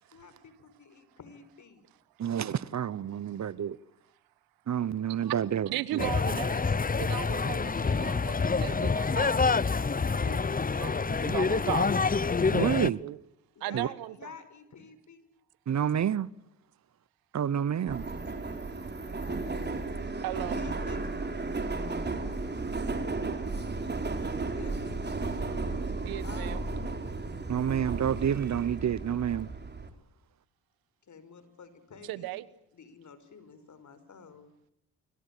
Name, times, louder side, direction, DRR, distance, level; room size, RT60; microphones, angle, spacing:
voice 1, 0.1-1.9 13.6-15.3 18.6-20.2 20.5-21.4 24.2-25.8 26.2-27.1 31.1-32.4 32.7-34.5, left 5 dB, 55° left, 5.4 m, -51 dB
voice 2, 2.2-3.8 4.7-6.1 12.5-13.0 13.7-13.9 15.7-16.3 17.3-18.1 27.5-29.5, right 9 dB, 50° right, 1.0 m, -29 dB
voice 3, 5.7-6.7 6.9-9.6 10.2-10.4 10.8-11.9 13.0-13.2 13.6-14.3 20.2-20.6 26.0-26.6 32.0-32.5, right 16 dB, 90° right, 1.2 m, -36 dB
sound 1, 6.0-12.9, left 4 dB, 25° left, 1.0 m, -27 dB
Subway metro underground, 17.9-29.9, right 3 dB, 30° right, 4.3 m, -34 dB
26.5 x 24.0 x 8.6 m
supercardioid pair, 60°, 35 cm